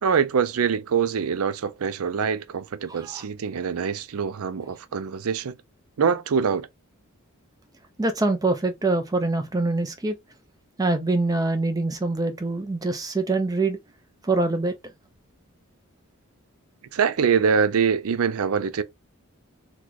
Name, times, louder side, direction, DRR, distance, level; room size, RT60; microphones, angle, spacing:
voice 1, 0.0-5.5 6.0-6.7 16.9-18.8, right 6 dB, 80° right, 0.4 m, -24 dB
voice 2, 2.9-3.2 8.0-10.1 10.8-13.8 14.2-14.7, right 2 dB, 15° right, 0.4 m, -24 dB
3.1 x 2.2 x 3.8 m
head